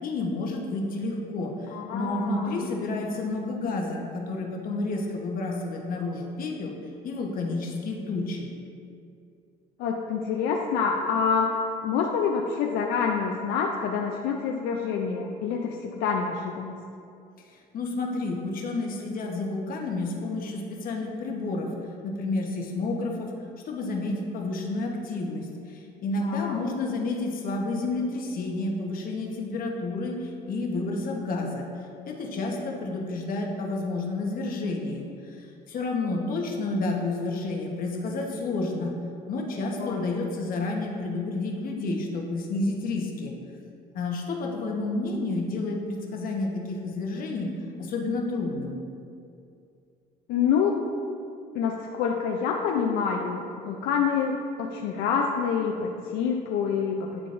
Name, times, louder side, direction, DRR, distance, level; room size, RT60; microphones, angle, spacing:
voice 1, 0.0-1.5 1.9-6.7 7.0-8.5 17.7-21.7 22.0-23.3 23.6-31.7 32.1-38.9 39.3-43.3 43.9-47.5 47.8-48.8, left 2 dB, 55° left, 0 dB, 1.0 m, -30 dB
voice 2, 1.7-2.7 9.8-11.5 11.8-16.7 26.2-26.6 39.8-40.1 50.3-50.8 51.5-57.2, left 6 dB, 85° left, 1 dB, 0.4 m, -27 dB
9.8 x 3.8 x 2.5 m, 2.5 s
cardioid pair, 110°, 17 cm